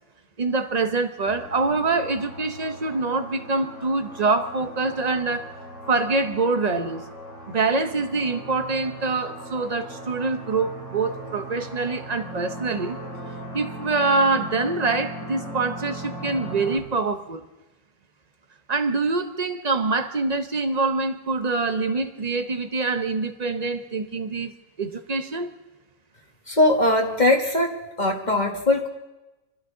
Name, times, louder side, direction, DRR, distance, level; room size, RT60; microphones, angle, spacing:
voice 1, 0.4-5.5 5.9-7.0 7.5-13.0 13.5-17.4 18.7-24.5 24.8-25.5, right 3 dB, 60° right, 7 dB, 0.4 m, -25 dB
sound 1, 1.2-16.8, equal, 90° left, 7.0 m, -38 dB
voice 2, 26.5-28.9, left 2 dB, 25° left, 2 dB, 1.4 m, -21 dB
28.0 x 12.0 x 3.9 m, 1.1 s
omnidirectional pair, 1.9 m